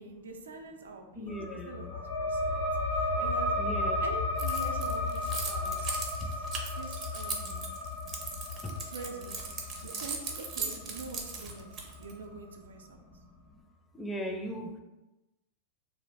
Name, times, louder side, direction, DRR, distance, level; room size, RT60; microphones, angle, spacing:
voice 1, 0.0-2.6 2.9-3.5 4.0-6.5 6.8-7.7 8.8-11.7 12.0-13.0, right 3 dB, 85° right, 4 dB, 0.4 m, -45 dB
voice 2, 1.2-1.9 3.6-4.0 13.9-14.7, equal, 10° left, 2 dB, 0.5 m, -37 dB
sound 1, 1.3-12.4, left 2 dB, 70° left, 0.8 m, -34 dB
Keys jangling, 4.4-12.1, right 5 dB, 35° right, 0.6 m, -38 dB
2.2 x 2.0 x 3.3 m, 1.0 s
hypercardioid pair, 105°, 0 cm